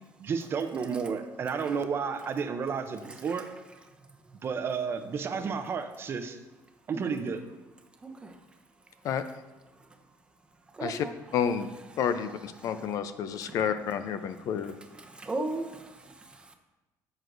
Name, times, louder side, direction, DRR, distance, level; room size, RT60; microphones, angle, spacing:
voice 1, 0.2-3.5 4.4-6.4 6.9-7.4, right 6 dB, 35° right, 8 dB, 0.6 m, -32 dB
voice 2, 3.1-3.4 5.3-5.5 6.9-7.2 8.0-8.4 10.7-11.1 12.6-12.7 15.0-16.5, right 2 dB, 15° right, 4 dB, 0.8 m, -37 dB
voice 3, 11.3-11.7 12.0-14.8, left 8 dB, 60° left, 10 dB, 0.5 m, -30 dB
14.0 x 6.2 x 2.6 m, 1.1 s
cardioid pair, 135°, 7 cm